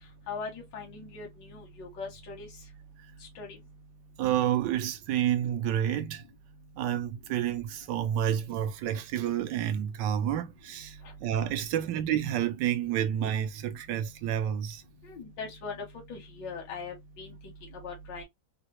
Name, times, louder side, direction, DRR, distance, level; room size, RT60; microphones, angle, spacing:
voice 1, 0.3-2.5 3.2-3.6 11.0-11.1 15.0-17.3 17.7-18.2, left 4 dB, 90° left, 1.6 m, -40 dB
voice 2, 4.2-6.2 6.8-14.8, right 10 dB, 80° right, 1.2 m, -29 dB
3.9 x 2.0 x 2.9 m
omnidirectional pair, 1.9 m